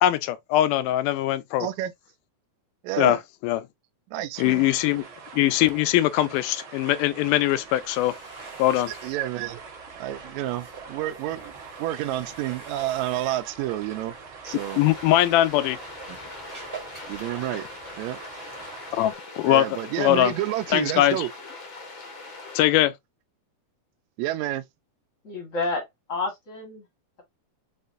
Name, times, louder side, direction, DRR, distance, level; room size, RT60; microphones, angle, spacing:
voice 1, 0.0-1.7 3.0-3.2 3.4-3.6 4.4-5.0 5.3-8.1 8.6-8.9 14.8-15.8 18.9-19.7 20.0-20.3 20.7-21.3 22.6-22.9, left 14 dB, 85° left, 2.1 m, -21 dB
voice 2, 1.6-1.9 2.8-3.2 4.1-4.7 9.0-9.6 10.0-11.5 11.8-14.2 14.4-14.8 16.1-16.2 17.1-17.6 18.0-18.2 19.5-21.3 24.2-24.6, right 14 dB, 85° right, 1.6 m, -29 dB
sound 1, 4.3-19.1, right 5 dB, 60° right, 1.3 m, -44 dB
sound 2, 7.6-18.2, right 4 dB, 20° right, 0.4 m, -47 dB
sound 3, 14.4-22.7, left 3 dB, 70° left, 1.2 m, -41 dB
voice 3, 25.2-26.9, left 3 dB, 45° left, 1.0 m, -30 dB
6.4 x 2.4 x 2.4 m
omnidirectional pair, 3.7 m